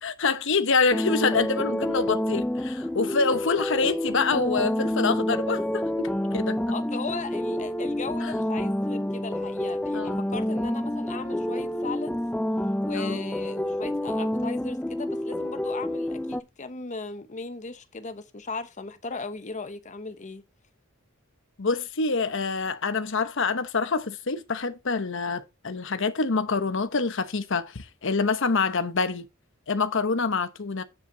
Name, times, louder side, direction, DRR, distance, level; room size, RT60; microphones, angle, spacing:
voice 1, 0.0-6.6 8.2-8.3 9.9-10.2 12.9-13.2 21.6-29.3 29.7-30.8, left 4 dB, 65° left, 1.0 m, -26 dB
sound 1, 0.9-16.4, left 1 dB, 5° left, 0.4 m, -28 dB
voice 2, 6.7-12.2 12.8-20.4, left 4 dB, 35° left, 1.0 m, -37 dB
7.8 x 7.5 x 3.9 m
head